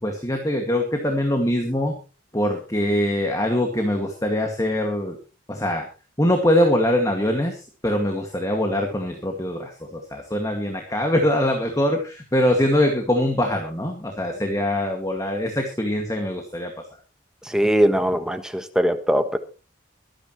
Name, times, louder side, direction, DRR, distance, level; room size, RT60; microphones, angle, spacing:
voice 1, 0.0-2.0 2.3-5.2 5.5-5.9 6.2-16.7, left 1 dB, 15° left, 3 dB, 2.1 m, -23 dB
voice 2, 17.4-19.4, equal, 5° right, 8 dB, 1.2 m, -21 dB
24.0 x 10.0 x 3.1 m, 0.33 s
head